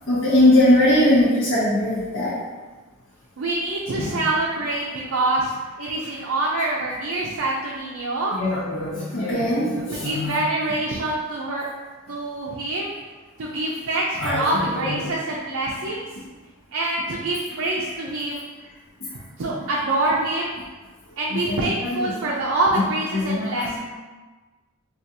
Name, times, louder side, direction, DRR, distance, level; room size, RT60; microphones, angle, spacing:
voice 1, 0.1-2.4 4.0-4.3 4.9-5.0 6.9-7.0 7.7-7.8 8.3-10.8 14.1-15.2 15.9-16.0 20.1-20.2 21.3-22.3 22.7-23.8, left 1 dB, 60° left, -7 dB, 0.7 m, -22 dB
voice 2, 3.4-5.5 5.8-8.4 9.9-11.7 12.1-12.9 13.4-16.1 16.7-18.5 19.4-20.6 21.2-23.8, right 2 dB, 60° right, -4 dB, 0.5 m, -25 dB
4.6 x 2.4 x 2.7 m, 1.3 s
head